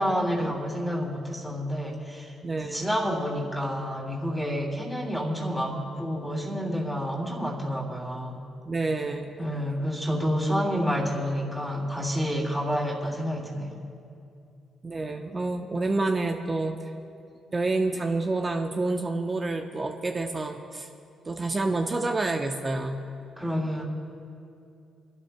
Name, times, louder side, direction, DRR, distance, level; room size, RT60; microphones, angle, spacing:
voice 1, 0.0-2.3 2.7-8.4 9.4-13.8 23.4-23.8, equal, ahead, -2 dB, 3.0 m, -29 dB
voice 2, 2.4-2.9 8.7-9.3 14.8-16.8 17.5-20.9 21.3-23.1, right 2 dB, 30° right, 3 dB, 0.8 m, -28 dB
29.0 x 12.0 x 2.3 m, 2.6 s
supercardioid pair, 65°, 0 cm